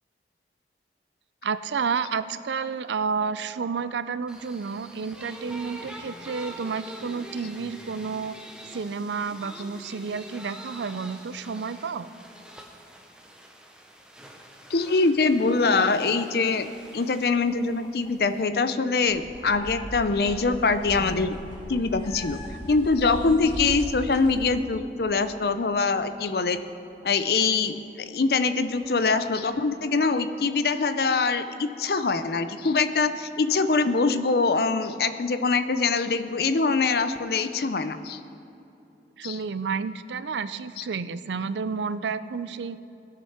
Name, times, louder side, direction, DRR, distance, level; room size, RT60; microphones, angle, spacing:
voice 1, 1.4-8.4 8.7-12.1 39.2-42.8, right 5 dB, 85° right, 14 dB, 0.5 m, -30 dB
sound 1, 4.3-18.5, right 1 dB, 5° right, 0.8 m, -45 dB
voice 2, 14.7-21.3 21.7-22.4 22.7-26.6 27.0-38.2 39.2-39.4 40.8-40.9, left 4 dB, 60° left, 11 dB, 0.6 m, -24 dB
sound 2, 14.8-16.4 16.7-20.2 20.6-20.7 20.9-22.5 22.9-24.6 24.9-25.0 25.3-27.8 28.0-28.1 28.5-29.6, left 2 dB, 25° left, 0.7 m, -48 dB
sound 3, 19.1-24.6, equal, 45° right, 2.8 m, -39 dB
19.5 x 6.7 x 5.7 m, 2.8 s
head